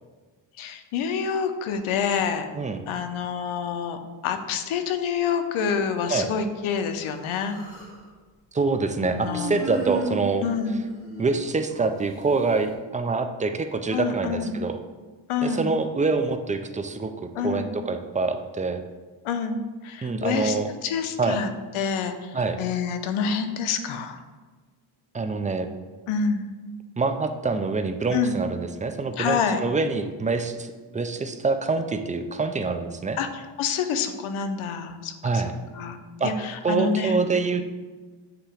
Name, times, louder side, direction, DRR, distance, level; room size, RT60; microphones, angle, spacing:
voice 1, 0.6-2.5 2.9-7.6 9.1-9.6 10.4-10.8 13.9-14.6 15.3-15.7 17.3-17.7 19.2-21.5 21.7-24.2 26.1-26.5 28.1-28.4 29.2-29.6 33.2-35.4 35.7-37.2, left 6 dB, 85° left, 8 dB, 0.8 m, -27 dB
Human voice, 7.0-8.0 9.2-11.9, right 2 dB, 25° left, 2.0 m, -34 dB
voice 2, 8.5-10.4 11.2-14.8 15.4-18.8 20.0-20.7 21.2-21.4 22.3-22.6 25.1-25.7 27.0-33.2 35.2-35.5 36.2-36.3 36.6-37.7, right 4 dB, 20° right, 7 dB, 0.3 m, -26 dB
8.1 x 2.9 x 5.0 m, 1.4 s
cardioid pair, 110°, 48 cm